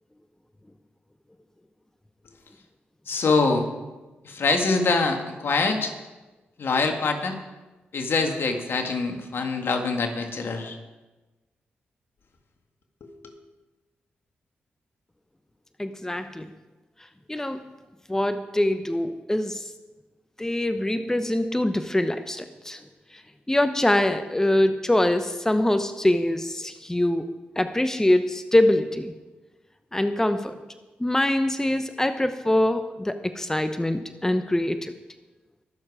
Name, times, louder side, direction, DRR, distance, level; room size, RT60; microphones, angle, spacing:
voice 1, 3.1-3.7 4.2-5.9 6.6-7.4 7.9-10.8 13.0-13.3, left 3 dB, 65° left, 4 dB, 1.8 m, -24 dB
voice 2, 15.8-16.5 17.3-17.6 18.1-19.7 20.4-22.8 23.1-23.2 23.5-27.3 27.6-29.1 29.9-30.6 31.0-34.9, left 1 dB, 10° left, 9 dB, 0.9 m, -24 dB
21.5 x 7.2 x 4.9 m, 1.2 s
supercardioid pair, 45°, 4 cm